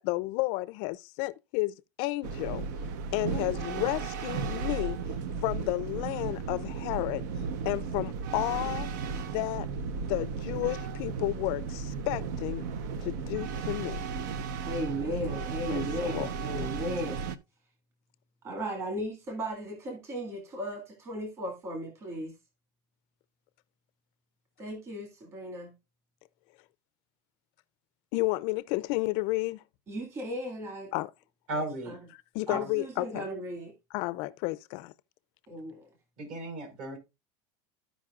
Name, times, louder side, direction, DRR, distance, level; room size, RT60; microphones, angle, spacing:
voice 1, 0.0-2.7 3.1-5.0 5.4-7.2 7.6-8.9 9.2-9.7 10.1-12.7 13.0-14.0 15.1-15.3 15.7-16.3 16.6-16.7 28.1-29.6 30.9-31.1 32.3-33.2 33.9-34.9, left 20 dB, 55° left, 0.4 m, -32 dB
sound 1, 2.2-17.4, right 5 dB, 75° right, 0.8 m, -35 dB
voice 2, 14.7-17.2 18.4-22.3 24.6-25.7 29.9-30.9 31.5-32.0 32.5-33.7 35.5-35.9, equal, 25° right, 1.9 m, -36 dB
voice 3, 31.5-32.0 32.5-32.7 36.2-37.0, right 1 dB, 55° right, 4.6 m, -35 dB
14.5 x 5.2 x 2.4 m
supercardioid pair, 155°, 10 cm